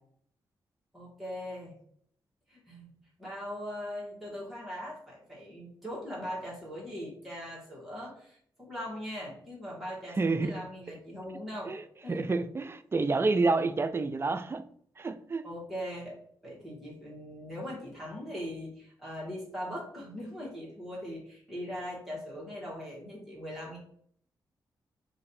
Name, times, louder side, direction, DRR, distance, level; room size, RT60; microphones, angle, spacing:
voice 1, 0.9-1.7 2.5-2.9 3.2-11.7 12.0-12.2 15.4-16.2 16.4-23.8, equal, ahead, -6 dB, 1.5 m, -40 dB
voice 2, 10.2-10.5 11.7-11.8 12.1-14.6 15.0-15.4, right 3 dB, 30° right, 10 dB, 0.4 m, -28 dB
3.1 x 2.6 x 4.1 m, 0.63 s
cardioid pair, 65°, 9 cm